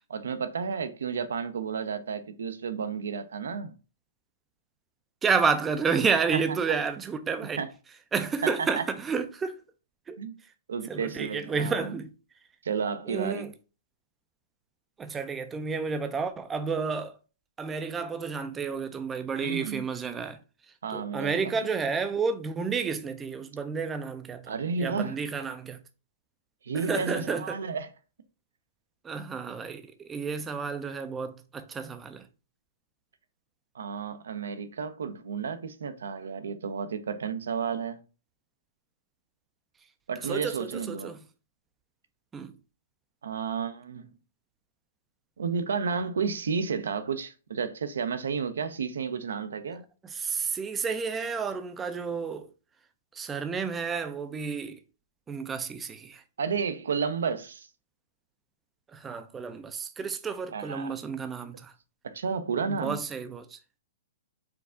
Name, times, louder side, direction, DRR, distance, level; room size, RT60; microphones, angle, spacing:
voice 1, 0.1-3.7 6.3-6.4 7.6-7.7 8.8-8.9 10.2-10.3 10.7-11.9 12.6-13.5 19.4-19.8 20.8-21.4 24.5-25.2 26.6-27.9 33.7-38.0 40.1-41.1 43.2-44.1 45.4-49.8 56.4-57.7 60.5-60.9 62.0-63.0, right 6 dB, 80° right, 0.6 m, -32 dB
voice 2, 5.2-7.6 8.1-9.6 10.1-10.2 10.9-12.1 13.1-13.5 15.0-17.2 17.6-20.4 20.7-25.8 26.7-27.6 29.0-32.3 40.2-41.2 42.3-42.6 49.7-49.8 50.0-52.5 53.1-54.8 55.3-56.2 58.9-61.7 62.7-63.6, right 5 dB, 15° right, 0.4 m, -31 dB
4.7 x 2.3 x 3.7 m
hypercardioid pair, 140°, 0 cm